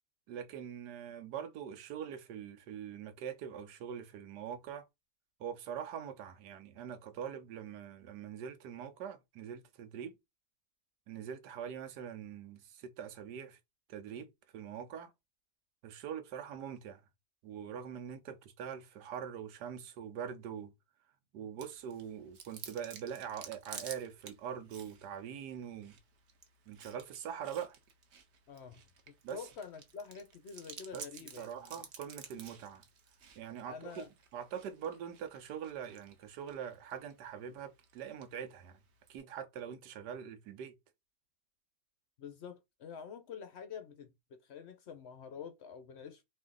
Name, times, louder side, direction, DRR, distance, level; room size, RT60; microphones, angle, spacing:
voice 1, 0.3-4.9 5.4-10.2 11.1-13.6 13.9-15.1 15.8-17.0 17.4-20.7 21.3-26.0 26.7-27.8 29.2-29.5 30.9-31.0 31.4-32.8 33.4-38.8 39.1-40.7, right 8 dB, 80° right, 1.3 m, -43 dB
Chewing mastication, 21.6-39.2, right 6 dB, 55° right, 0.8 m, -54 dB
voice 2, 28.5-31.8 33.7-34.1 42.2-46.2, left 6 dB, 65° left, 0.6 m, -47 dB
4.3 x 2.6 x 3.7 m
omnidirectional pair, 1.8 m